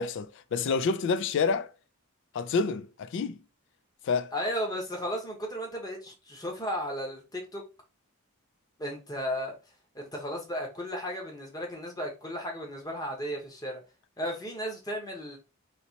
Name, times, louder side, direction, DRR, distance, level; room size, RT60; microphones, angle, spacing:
voice 1, 0.0-1.7 2.3-3.4 4.0-4.3, left 4 dB, 55° left, 0.3 m, -28 dB
voice 2, 4.3-7.7 8.8-9.6 9.9-13.8 14.2-15.4, equal, 15° left, 0.9 m, -34 dB
3.2 x 2.9 x 2.7 m
head